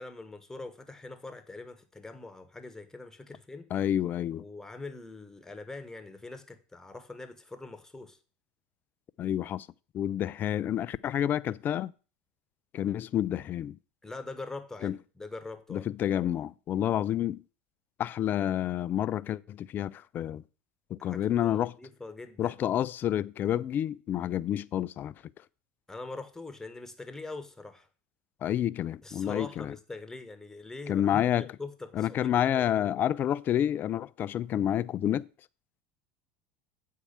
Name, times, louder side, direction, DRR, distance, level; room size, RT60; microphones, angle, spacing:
voice 1, 0.0-3.7 4.4-8.2 14.0-15.9 21.0-22.6 25.9-27.9 29.0-33.0, left 3 dB, 10° left, 1.5 m, -43 dB
voice 2, 3.7-4.4 9.2-9.7 9.9-11.9 12.7-13.8 14.8-15.0 15.7-17.4 18.0-20.4 20.9-21.7 22.4-25.1 28.4-29.7 30.9-31.5 32.0-35.3, left 11 dB, 40° left, 0.4 m, -29 dB
8.4 x 4.8 x 7.1 m
hypercardioid pair, 85°, 5 cm